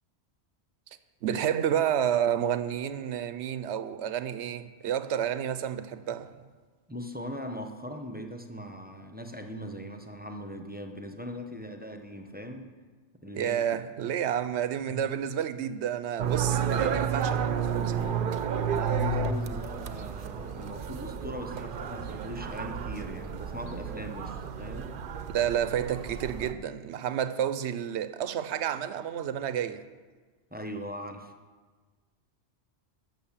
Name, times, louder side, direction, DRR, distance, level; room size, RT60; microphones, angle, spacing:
voice 1, 1.2-6.3 13.3-17.9 25.3-29.9, right 9 dB, 90° right, 0.9 m, -30 dB
voice 2, 6.9-12.7 13.2-13.8 14.9-15.0 18.8-24.9 30.5-31.3, equal, 10° right, 0.8 m, -40 dB
sound 1, 16.2-26.5, right 6 dB, 55° right, 0.7 m, -31 dB
13.5 x 6.4 x 7.3 m
omnidirectional pair, 1.1 m